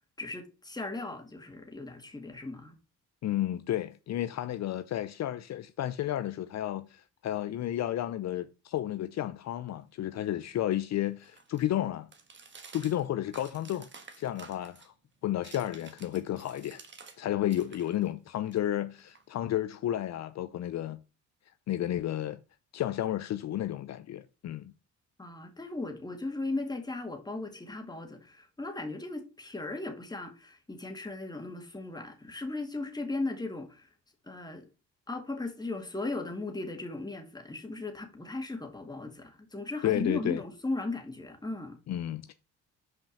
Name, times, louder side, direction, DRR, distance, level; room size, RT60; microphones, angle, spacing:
voice 1, 0.2-2.8 25.2-33.9 34.2-34.7 35.1-41.8, left 2 dB, 15° left, 2.1 m, -37 dB
voice 2, 3.2-12.1 12.7-13.9 14.2-14.9 15.2-16.8 17.2-21.0 21.7-22.4 22.7-24.7 39.8-40.4 41.9-42.3, left 12 dB, 60° left, 0.6 m, -32 dB
sound 1, 9.8-17.2 17.5-19.7, right 4 dB, 40° right, 1.6 m, -53 dB
5.9 x 5.2 x 6.5 m
cardioid pair, 90°, 30 cm